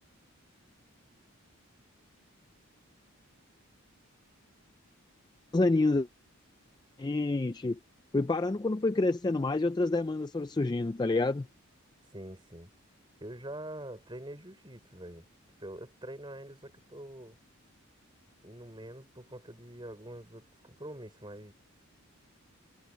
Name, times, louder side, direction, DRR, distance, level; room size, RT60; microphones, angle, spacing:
voice 1, 5.5-6.1 7.0-7.8 8.1-11.5, left 2 dB, 20° left, 0.3 m, -28 dB
voice 2, 12.1-12.7 13.2-15.3 15.6-17.4 18.4-21.5, right 1 dB, 20° right, 5.5 m, -45 dB
head